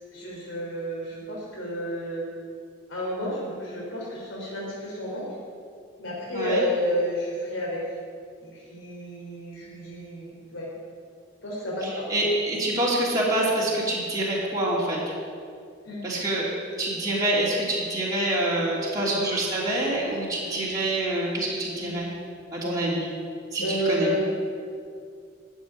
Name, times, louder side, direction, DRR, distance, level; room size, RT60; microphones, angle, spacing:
voice 1, 0.1-2.3 2.9-5.3 6.0-7.8 8.4-10.7 11.4-12.1 15.8-16.0 18.9-19.2 20.3-20.6 21.7-22.0 22.6-22.8 23.6-24.3, equal, 85° left, -3 dB, 3.5 m, -31 dB
voice 2, 6.3-6.6 12.1-15.0 16.0-16.5 16.8-22.1 22.5-23.0 23.5-24.1, right 1 dB, 20° right, -7 dB, 3.2 m, -26 dB
12.5 x 7.0 x 9.5 m, 2.3 s
head